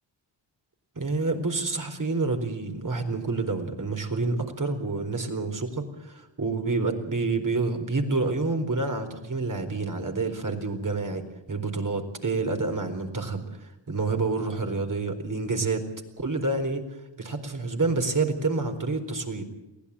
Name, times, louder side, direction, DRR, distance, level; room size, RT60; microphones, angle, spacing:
voice 1, 1.0-13.6 13.9-15.8 16.2-16.9 17.2-19.5, right 3 dB, 40° right, 5 dB, 4.3 m, -28 dB
23.0 x 16.5 x 8.6 m, 0.97 s
cardioid pair, 55°, 47 cm